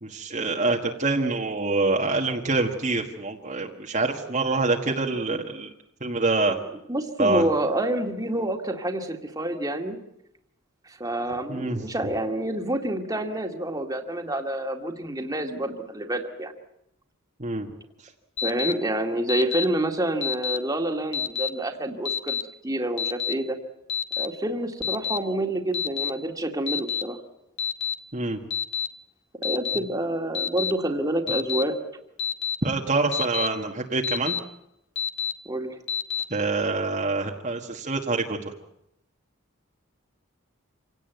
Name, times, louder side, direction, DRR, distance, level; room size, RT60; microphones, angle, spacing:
voice 1, 0.0-5.7 6.0-6.5 7.2-7.4 11.5-11.8 17.4-17.7 28.1-28.4 31.3-31.4 32.6-34.3 36.3-38.4, right 3 dB, 35° right, 1 dB, 1.6 m, -26 dB
voice 2, 6.9-10.0 10.9-16.5 18.4-23.6 24.2-27.2 29.4-31.8 35.5-35.8, right 1 dB, 15° right, 4 dB, 2.1 m, -28 dB
Alarm, 18.4-18.7 19.3-19.6 20.2-20.6 21.1-21.5 22.0-22.4 23.0-23.3 23.9-24.3 24.8-25.2 25.7-26.1 26.7-27.0 27.6-27.9 28.5-28.9 29.4-29.8 30.3-30.7 31.3-31.6 32.2-32.5 33.1-33.5 34.0-34.4 35.0-35.3 35.9-36.2, left 8 dB, 60° left, 1.8 m, -27 dB
26.5 x 17.5 x 9.3 m, 0.82 s
head